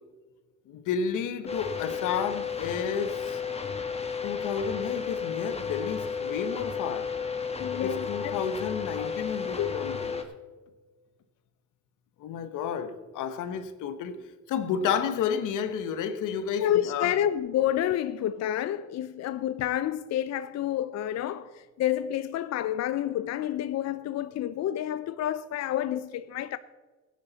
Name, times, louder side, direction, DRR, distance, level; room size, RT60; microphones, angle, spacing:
voice 1, 0.7-3.4 4.2-7.1 7.7-10.2 12.2-14.2 14.5-17.1, left 7 dB, 90° left, 1.0 m, -31 dB
sound 1, 1.5-10.2, left 6 dB, 20° left, 1.4 m, -33 dB
voice 2, 7.6-8.4 9.0-9.8 16.6-26.6, left 11 dB, 60° left, 0.5 m, -29 dB
16.5 x 9.6 x 4.0 m
cardioid pair, 90°, 30 cm